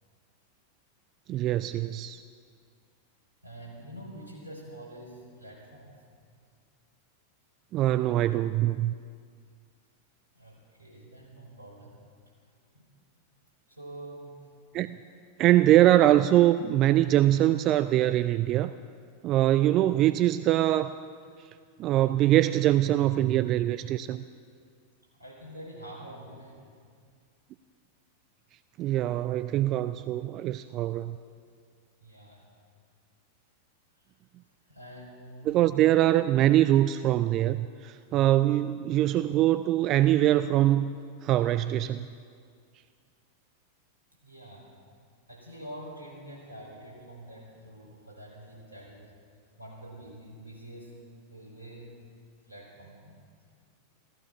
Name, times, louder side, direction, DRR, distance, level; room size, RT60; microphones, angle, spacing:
voice 1, 1.3-2.2 7.7-8.9 14.7-15.0 15.4-18.7 19.2-20.9 21.8-24.2 28.8-31.2 35.5-40.9 41.2-42.1, right 13 dB, 35° right, 13 dB, 0.4 m, -23 dB
voice 2, 3.4-6.0 10.3-12.0 12.7-12.9 13.7-14.5 25.1-26.7 32.0-32.5 34.6-35.5 38.0-38.2 44.2-44.8 45.3-49.1 49.6-51.0 51.3-51.9 52.4-53.2, right 1 dB, 85° right, -3 dB, 4.9 m, -46 dB
16.0 x 15.0 x 5.9 m, 2.1 s
figure-of-eight pair, 90°, 0 cm